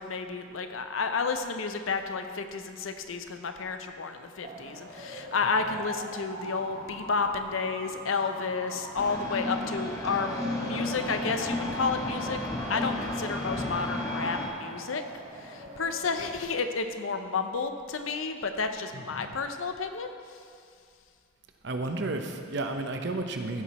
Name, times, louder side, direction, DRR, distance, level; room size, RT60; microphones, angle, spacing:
voice 1, 0.0-10.4 10.6-12.4 12.7-15.0 15.4-20.1, left 4 dB, 85° left, 7 dB, 0.7 m, -31 dB
sound 1, 4.4-16.4, right 1 dB, 45° right, 1.2 m, -42 dB
sound 2, 8.9-14.5, left 2 dB, 15° left, 1.1 m, -33 dB
voice 2, 18.9-19.4 21.6-23.6, right 2 dB, 60° right, 5 dB, 0.8 m, -33 dB
15.0 x 6.1 x 4.2 m, 2.2 s
head